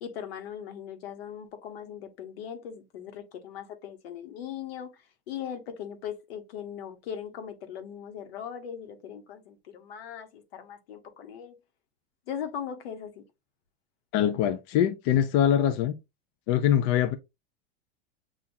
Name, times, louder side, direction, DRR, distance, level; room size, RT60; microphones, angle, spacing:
voice 1, 0.0-11.5 12.3-13.2, left 8 dB, 80° left, 1.2 m, -39 dB
voice 2, 14.1-15.9 16.5-17.2, left 10 dB, 50° left, 0.5 m, -23 dB
7.2 x 2.5 x 2.6 m
supercardioid pair, 135°, 30 cm